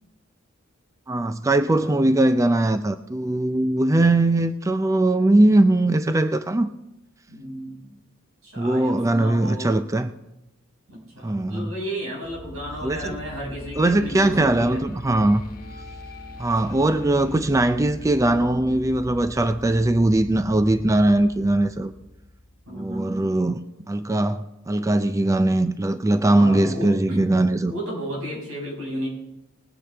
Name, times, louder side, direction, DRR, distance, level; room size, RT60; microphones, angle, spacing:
voice 1, 1.1-6.7 8.6-10.1 11.2-11.7 12.8-13.2 13.8-15.4 16.4-21.9 22.7-23.6 23.9-27.7, right 1 dB, 15° right, 0.4 m, -20 dB
voice 2, 7.3-8.0 8.4-9.8 10.9-14.8 16.6-16.8 22.7-23.3 26.3-27.3 27.6-29.1, equal, 90° right, 5.7 m, -33 dB
sound 1, 12.2-23.1, left 1 dB, 45° left, 1.2 m, -40 dB
20.0 x 9.9 x 3.4 m
head